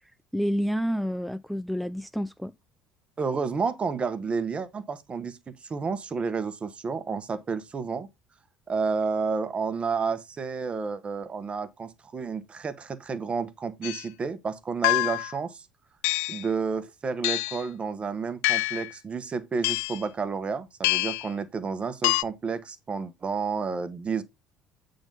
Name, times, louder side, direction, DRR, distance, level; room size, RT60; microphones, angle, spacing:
voice 1, 0.3-2.5, equal, ahead, 0.5 m, -29 dB
voice 2, 3.2-5.4 5.6-8.1 8.7-15.7 16.3-24.2, right 5 dB, 30° right, 1.3 m, -30 dB
sound 1, 13.8-14.0 14.8-15.4 16.0-16.5 17.2-17.6 18.4-18.9 19.6-20.0 20.8-21.3 22.0-22.2, left 22 dB, 65° left, 0.4 m, -26 dB
8.8 x 3.9 x 5.4 m
figure-of-eight pair, 60°, 4 cm